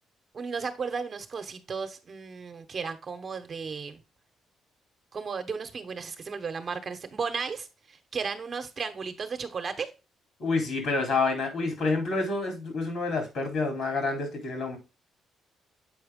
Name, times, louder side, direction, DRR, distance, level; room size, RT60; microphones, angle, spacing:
voice 1, 0.3-4.0 5.1-9.9, right 5 dB, 45° right, 1.1 m, -34 dB
voice 2, 10.4-14.8, left 3 dB, 70° left, 3.6 m, -28 dB
7.8 x 4.5 x 3.7 m
cardioid pair, 90°, 0 cm